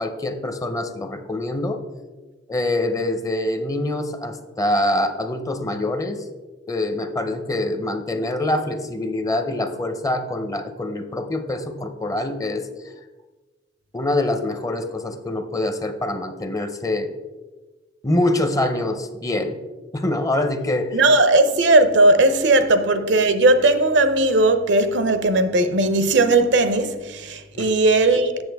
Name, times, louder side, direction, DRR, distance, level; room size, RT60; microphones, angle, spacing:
voice 1, 0.0-1.8 2.5-6.2 6.7-12.7 13.9-17.1 18.0-19.6 19.9-21.0 27.5-27.7, left 1 dB, 20° left, 0.6 m, -25 dB
voice 2, 20.9-28.4, right 2 dB, 75° right, 0.6 m, -17 dB
8.1 x 6.8 x 3.4 m
head